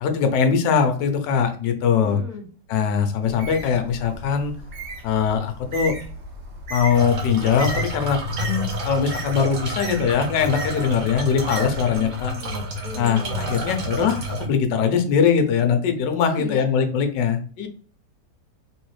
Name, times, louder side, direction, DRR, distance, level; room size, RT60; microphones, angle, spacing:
voice 1, 0.0-2.2 2.7-4.5 5.0-5.9 6.7-12.3 13.0-17.7, left 6 dB, 80° left, 7 dB, 1.3 m, -21 dB
voice 2, 2.0-2.4 11.9-13.6 16.2-16.7, left 5 dB, ahead, -7 dB, 1.6 m, -36 dB
Bird, 3.2-12.3, right 1 dB, 75° right, 1.5 m, -36 dB
sound 1, 6.9-14.5, equal, 55° right, 1.2 m, -30 dB
3.2 x 3.1 x 3.1 m, 0.41 s
omnidirectional pair, 1.9 m